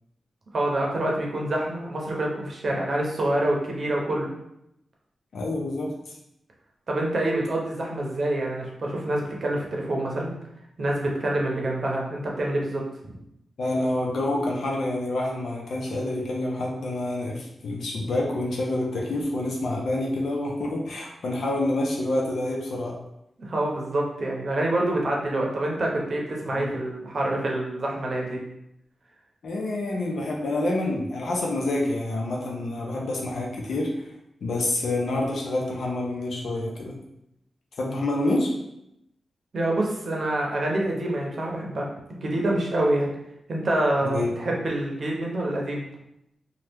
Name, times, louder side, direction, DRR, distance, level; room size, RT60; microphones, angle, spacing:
voice 1, 0.5-4.3 6.9-10.3 10.8-13.2 23.4-28.4 39.5-43.1 43.5-45.8, right 1 dB, 50° right, -1 dB, 0.7 m, -26 dB
voice 2, 5.3-6.1 13.6-23.0 26.5-26.7 29.4-33.9 34.4-36.9 37.8-38.5 44.0-44.6, left 2 dB, 80° left, -2 dB, 0.7 m, -27 dB
2.9 x 2.3 x 3.4 m, 0.81 s
wide cardioid pair, 115°, 0 cm